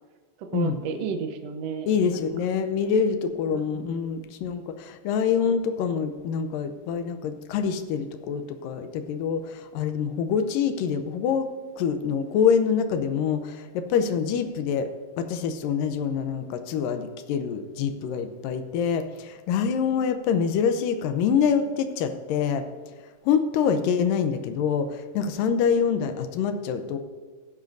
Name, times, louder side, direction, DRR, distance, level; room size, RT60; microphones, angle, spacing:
voice 1, 0.4-2.2 3.5-3.9, right 6 dB, 80° right, 6 dB, 1.4 m, -33 dB
voice 2, 1.9-11.5 11.8-14.9 15.2-22.7 23.3-27.0, left 7 dB, 80° left, 9 dB, 2.2 m, -25 dB
16.0 x 11.0 x 2.6 m, 1.5 s
omnidirectional pair, 4.3 m